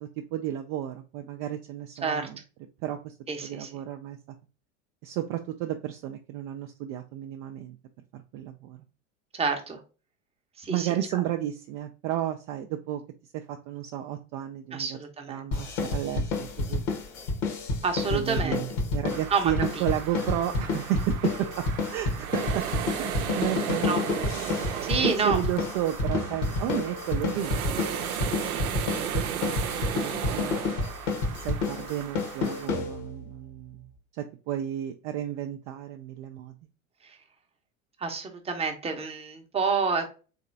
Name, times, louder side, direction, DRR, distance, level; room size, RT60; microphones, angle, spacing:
voice 1, 0.0-2.4 2.8-3.1 3.4-4.2 5.0-7.8 8.1-8.8 10.7-13.0 13.3-15.0 15.3-16.8 18.1-22.6 23.0-24.2 25.0-29.7 30.0-30.6 31.3-33.9 34.2-36.5, right 11 dB, 40° right, 4 dB, 0.5 m, -33 dB
voice 2, 3.3-3.7 9.3-9.8 10.6-10.9 14.7-15.4 17.8-18.6 19.3-19.8 23.8-24.0 24.8-25.6 37.0-37.2 38.0-40.1, right 5 dB, 15° right, 4 dB, 0.8 m, -29 dB
sound 1, 15.5-33.3, left 3 dB, 60° left, 1.3 m, -29 dB
sound 2, 19.1-32.7, right 9 dB, 80° right, 0.7 m, -35 dB
3.7 x 3.3 x 2.6 m, 0.35 s
hypercardioid pair, 85°, 42 cm